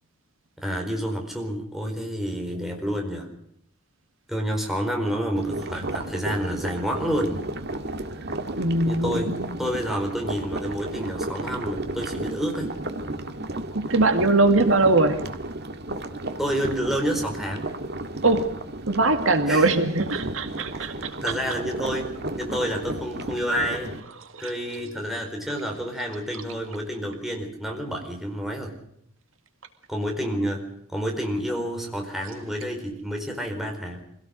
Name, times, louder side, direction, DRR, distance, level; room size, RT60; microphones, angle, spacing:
voice 1, 0.6-3.3 4.3-7.4 8.8-12.7 16.4-17.7 19.5-19.7 20.8-20.9 21.2-22.1 22.4-24.0 24.4-28.7 29.9-34.0, equal, ahead, 1 dB, 4.6 m, -29 dB
sound 1, 5.4-24.0, right 1 dB, 50° right, 1.8 m, -33 dB
voice 2, 8.5-9.6 13.7-15.2 18.2-18.5 18.9-21.2 24.3-24.5, right 2 dB, 75° right, 8 dB, 2.1 m, -21 dB
25.0 x 17.5 x 6.6 m, 0.71 s
head